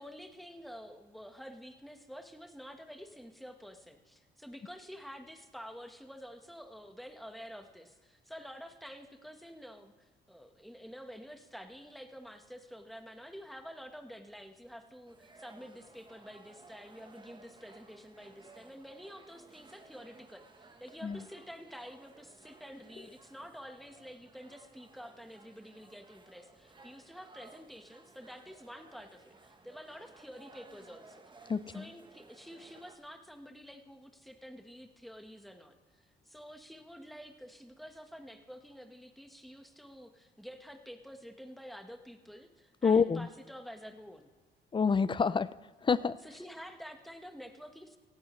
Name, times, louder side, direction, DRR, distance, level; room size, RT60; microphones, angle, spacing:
voice 1, 0.0-31.2 31.7-44.3 46.2-48.0, equal, ahead, 5 dB, 1.4 m, -49 dB
sound 1, 15.1-33.0, right 3 dB, 25° right, 1.2 m, -58 dB
voice 2, 31.5-31.9 42.8-43.3 44.7-45.6 45.8-46.2, left 5 dB, 25° left, 17 dB, 0.4 m, -27 dB
17.5 x 15.0 x 3.2 m, 1.3 s
cardioid pair, 90°, 20 cm